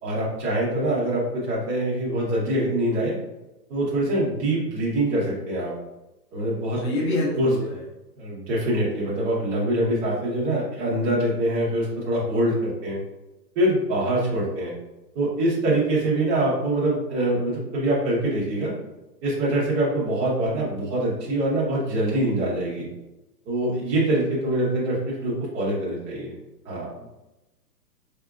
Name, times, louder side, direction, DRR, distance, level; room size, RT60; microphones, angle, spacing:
voice 1, 0.0-3.1 3.7-5.7 6.3-6.8 7.4-7.5 8.2-13.0 13.5-14.7 15.1-18.7 19.2-22.9 23.5-26.3 26.7-26.9, right 1 dB, 10° right, -6 dB, 0.7 m, -24 dB
voice 2, 6.8-7.8 27.0-27.1, left 2 dB, 40° left, -4 dB, 1.3 m, -27 dB
4.7 x 2.8 x 2.3 m, 1.0 s
hypercardioid pair, 150°, 49 cm